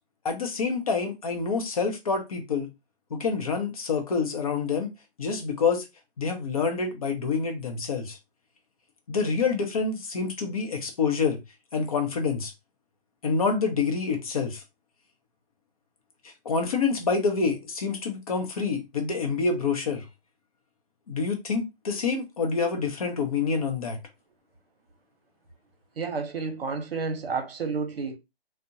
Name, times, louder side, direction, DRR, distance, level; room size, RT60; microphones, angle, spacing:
voice 1, 0.2-2.7 3.1-4.9 5.2-5.9 6.2-8.2 9.1-11.4 11.7-12.5 13.2-14.6 16.2-20.0 21.1-24.0, left 5 dB, 35° left, 0.6 m, -27 dB
voice 2, 26.0-28.2, right 4 dB, 65° right, 0.8 m, -30 dB
2.5 x 2.1 x 2.7 m
hypercardioid pair, 155°, 31 cm